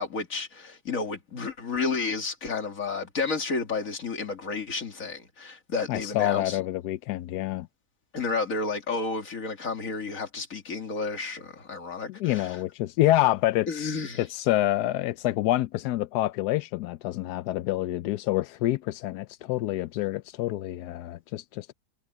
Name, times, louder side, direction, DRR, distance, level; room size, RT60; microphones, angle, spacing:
voice 1, 0.0-6.6 8.1-12.6 13.7-14.2, left 4 dB, 55° left, 2.7 m, -31 dB
voice 2, 5.9-7.7 12.1-21.7, left 15 dB, 90° left, 1.1 m, -27 dB
omnidirectional pair, 1.7 m